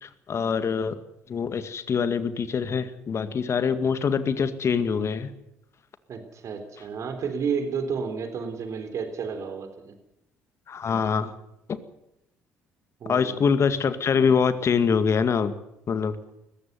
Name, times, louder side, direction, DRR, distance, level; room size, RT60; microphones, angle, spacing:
voice 1, 0.0-1.0 1.3-5.3 10.7-11.3 13.1-15.5 15.9-16.2, left 6 dB, 45° left, 12 dB, 2.0 m, -24 dB
voice 2, 6.1-9.9 13.0-13.4, right 6 dB, 55° right, 8 dB, 3.8 m, -31 dB
20.5 x 15.0 x 9.6 m, 0.84 s
hypercardioid pair, 50°, 6 cm